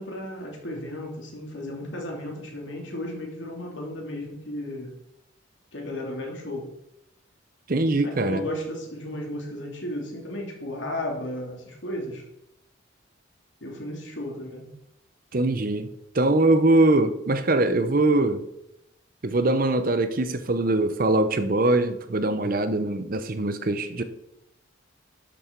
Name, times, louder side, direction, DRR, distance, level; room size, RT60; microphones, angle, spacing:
voice 1, 0.0-5.0 5.7-6.7 8.0-12.2 13.6-14.7, left 1 dB, 70° left, 2.7 m, -34 dB
voice 2, 7.7-8.4 15.3-15.9 16.1-18.5 19.2-24.0, right 2 dB, 45° right, 0.7 m, -22 dB
12.0 x 6.3 x 4.6 m
head